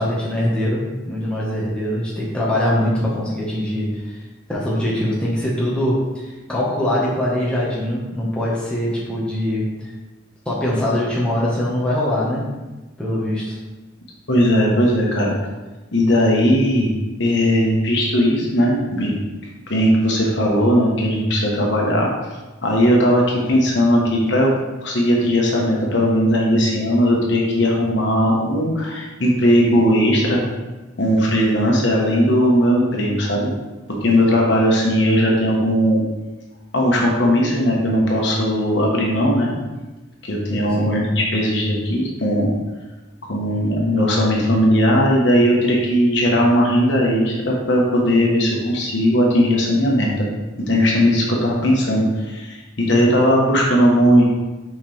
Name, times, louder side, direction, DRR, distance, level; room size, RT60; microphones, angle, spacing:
voice 1, 0.0-4.2 4.5-9.7 10.4-12.5 13.0-13.6 40.5-41.0, left 1 dB, 5° left, -7 dB, 1.4 m, -22 dB
voice 2, 14.3-15.4 15.9-16.9 17.2-19.2 19.7-22.1 22.6-24.5 24.8-30.4 31.0-33.5 34.0-36.0 36.7-39.5 40.2-42.5 43.3-50.3 50.6-54.2, equal, 60° left, -2 dB, 1.3 m, -18 dB
6.6 x 5.2 x 3.4 m, 1.1 s
head